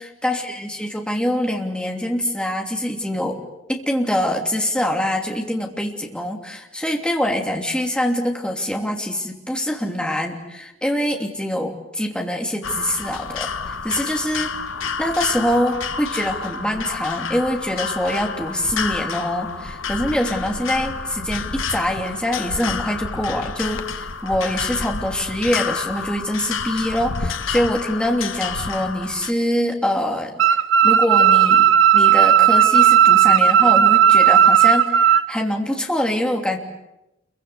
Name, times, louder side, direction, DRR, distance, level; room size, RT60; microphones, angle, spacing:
voice 1, 0.0-3.4 3.7-13.5 13.8-14.5 15.0-30.6 30.8-36.6, left 1 dB, 5° left, 2 dB, 3.0 m, -24 dB
sound 1, 12.6-29.3, left 5 dB, 85° left, 1.2 m, -29 dB
sound 2, 30.4-35.2, right 9 dB, 85° right, 1.2 m, -14 dB
28.5 x 23.5 x 8.2 m, 0.91 s
head